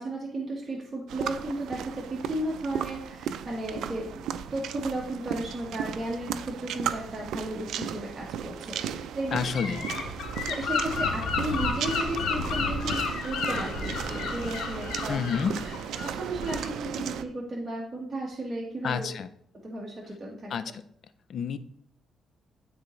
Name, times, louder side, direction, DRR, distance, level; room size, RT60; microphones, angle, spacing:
voice 1, 0.0-4.2 4.5-9.4 10.5-15.2 16.0-19.1 19.6-20.7, right 1 dB, 25° right, -3 dB, 1.5 m, -34 dB
sound 1, 1.1-17.2, right 9 dB, 80° right, 0.4 m, -36 dB
voice 2, 9.3-9.9 15.1-15.6 18.8-19.3 20.5-20.8 21.3-21.6, left 6 dB, 60° left, 13 dB, 0.5 m, -29 dB
Gull seagull / Wind, 9.5-16.8, left 4 dB, 75° left, 1.2 m, -31 dB
11.5 x 3.9 x 3.2 m, 0.67 s
cardioid pair, 90°, 0 cm